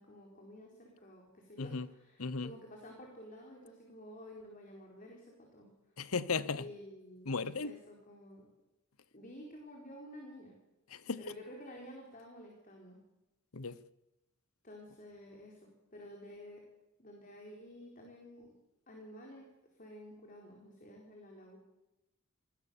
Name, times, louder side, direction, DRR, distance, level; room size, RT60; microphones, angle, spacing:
voice 1, 0.0-5.7 6.5-7.3 7.6-8.4 9.1-10.6 11.2-13.0 14.6-16.6 17.0-18.5 18.9-19.5 19.8-21.6, equal, 40° left, 4.4 m, -51 dB
voice 2, 2.2-2.5 6.0-6.6 7.3-7.7 10.9-11.2 13.5-13.8, left 4 dB, 80° left, 1.0 m, -36 dB
27.5 x 19.5 x 7.0 m
head